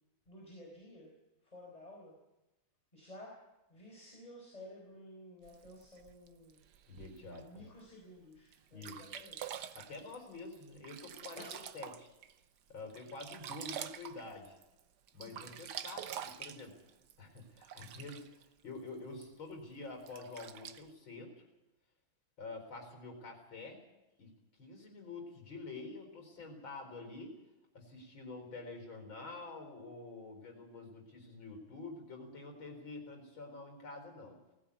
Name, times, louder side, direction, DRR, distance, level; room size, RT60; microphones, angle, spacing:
voice 1, 0.3-1.1 1.4-2.1 2.9-3.4 3.7-6.6 7.2-9.6 11.4-11.6 15.2-15.5, left 1 dB, 15° left, -2 dB, 4.6 m, -53 dB
Sink (filling or washing), 5.4-7.4 8.0-8.1 8.5-8.6 8.8-12.3 12.7-14.8 15.1-18.4 19.2-19.3 20.0-20.8, right 9 dB, 60° right, 1.4 m, -46 dB
voice 2, 6.9-7.6 8.7-9.1 9.8-12.1 12.7-14.6 15.1-16.8 17.2-18.3 18.6-21.3 22.4-23.8 24.2-24.3 24.6-27.4 27.7-34.4, left 3 dB, 70° left, 4 dB, 5.2 m, -47 dB
19.0 x 16.5 x 8.5 m, 0.98 s
omnidirectional pair, 2.2 m